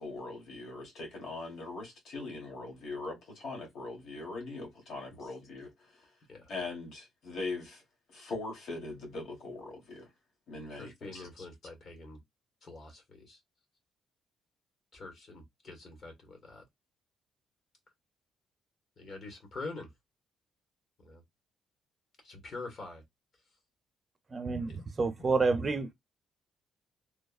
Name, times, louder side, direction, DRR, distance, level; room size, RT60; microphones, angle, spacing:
voice 1, 0.0-6.1 6.5-7.8 8.1-10.1 10.5-11.5, left 3 dB, 70° left, 1.5 m, -41 dB
voice 2, 10.8-12.2 12.6-13.4 14.9-16.6 19.0-19.9 21.0-21.2 22.2-23.0 24.7-24.8, left 3 dB, 50° left, 1.4 m, -45 dB
voice 3, 24.3-25.9, right 4 dB, 35° right, 0.7 m, -29 dB
3.2 x 2.1 x 2.4 m
cardioid pair, 90°, 0 cm